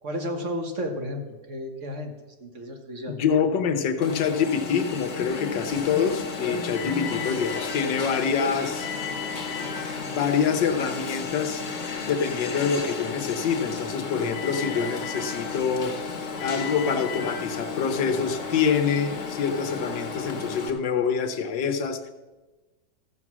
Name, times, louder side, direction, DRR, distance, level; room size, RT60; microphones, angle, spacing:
voice 1, 0.0-2.1 2.4-3.2, equal, 45° right, 3 dB, 1.6 m, -32 dB
voice 2, 3.1-8.9 10.0-11.6 12.0-16.0 16.4-22.1, left 6 dB, 90° left, 8 dB, 1.6 m, -26 dB
Alarm, 4.0-20.7, left 5 dB, 50° left, 1.4 m, -33 dB
14.5 x 7.4 x 6.1 m, 1.2 s
omnidirectional pair, 1.9 m